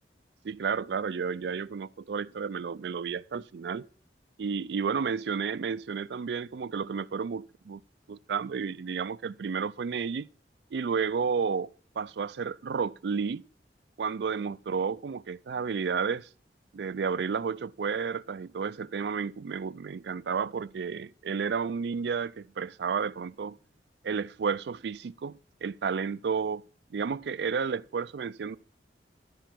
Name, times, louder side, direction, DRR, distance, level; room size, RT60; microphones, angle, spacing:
voice 1, 0.4-3.9 4.4-7.8 8.1-10.3 10.7-13.4 14.0-16.3 16.7-23.6 24.0-26.6 26.9-28.6, right 6 dB, 70° right, 0.4 m, -32 dB
12.5 x 4.5 x 7.5 m
head